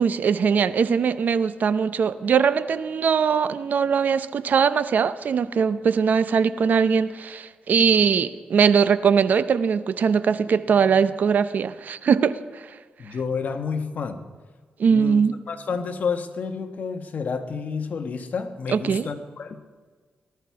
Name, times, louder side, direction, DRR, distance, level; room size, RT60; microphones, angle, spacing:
voice 1, 0.0-12.7 14.8-15.3 18.7-19.1, right 6 dB, 60° right, 14 dB, 0.6 m, -21 dB
voice 2, 13.0-14.2 14.9-19.8, left 5 dB, 55° left, 7 dB, 1.3 m, -30 dB
18.5 x 13.0 x 4.7 m, 1.4 s
cardioid pair, 105°, 3 cm